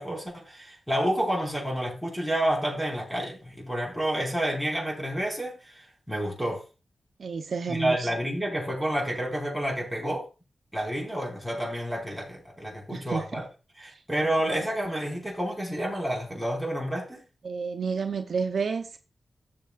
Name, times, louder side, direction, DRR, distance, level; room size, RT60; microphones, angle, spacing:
voice 1, 0.0-5.8 6.1-6.6 7.7-10.3 10.7-13.5 13.8-17.2, right 1 dB, ahead, 5.3 m, -29 dB
voice 2, 7.2-8.1 12.9-13.3 13.9-14.0 17.4-19.0, right 5 dB, 75° right, 0.8 m, -30 dB
15.0 x 7.6 x 2.5 m
cardioid pair, 60°, 0 cm